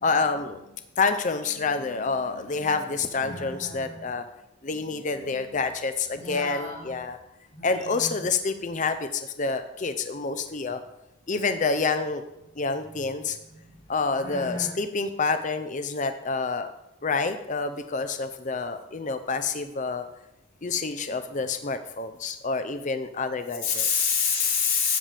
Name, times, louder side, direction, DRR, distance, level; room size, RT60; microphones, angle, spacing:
voice 1, 0.0-0.7 1.0-4.3 4.6-7.2 7.6-10.8 11.3-12.2 12.6-13.4 13.9-16.7 17.0-20.0 20.6-23.9, left 4 dB, 35° left, 9 dB, 0.6 m, -28 dB
voice 2, 3.2-4.0 6.1-6.9 7.5-8.3 12.8-13.0 13.6-14.7 23.6-25.0, left 6 dB, 60° left, -8 dB, 4.4 m, -29 dB
12.5 x 9.1 x 3.4 m, 0.88 s
head